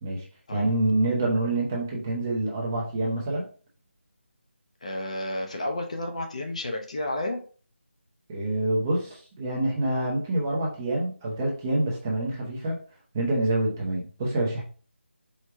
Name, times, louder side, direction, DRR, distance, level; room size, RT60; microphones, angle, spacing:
voice 1, 0.5-3.5 8.3-12.8 13.1-14.6, right 2 dB, 10° right, -4 dB, 0.6 m, -26 dB
voice 2, 4.8-7.4, left 1 dB, 30° left, 3 dB, 0.5 m, -31 dB
4.5 x 2.2 x 4.6 m, 0.41 s
figure-of-eight pair, 170°, 7 cm